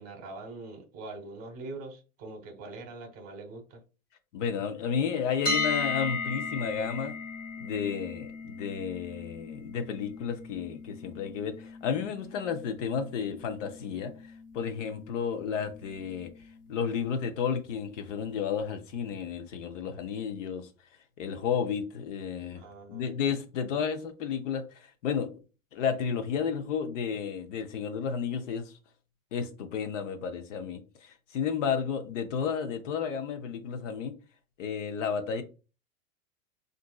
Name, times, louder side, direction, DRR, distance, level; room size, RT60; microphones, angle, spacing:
voice 1, 0.0-3.8 22.5-23.1, right 2 dB, 35° right, 1.0 m, -43 dB
voice 2, 4.3-7.1 7.6-14.1 14.5-16.3 16.7-20.7 21.2-22.6 22.9-25.3 25.7-28.7 29.3-34.1 34.6-35.4, left 7 dB, 60° left, 0.7 m, -32 dB
sound 1, 5.5-17.4, left 4 dB, 35° left, 1.1 m, -38 dB
3.6 x 2.6 x 2.2 m
hypercardioid pair, 120°, 42 cm